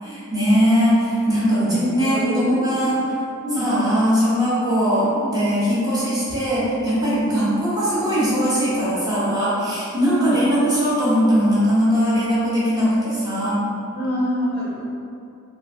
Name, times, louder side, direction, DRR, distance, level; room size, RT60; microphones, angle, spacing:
voice 1, 0.0-3.0 3.5-13.6, equal, 20° right, -10 dB, 0.9 m, -20 dB
voice 2, 1.6-2.9 3.4-3.6 7.3-7.4 10.1-10.3 13.9-14.8, equal, 25° left, -11 dB, 0.6 m, -26 dB
3.6 x 2.4 x 2.6 m, 2.5 s
head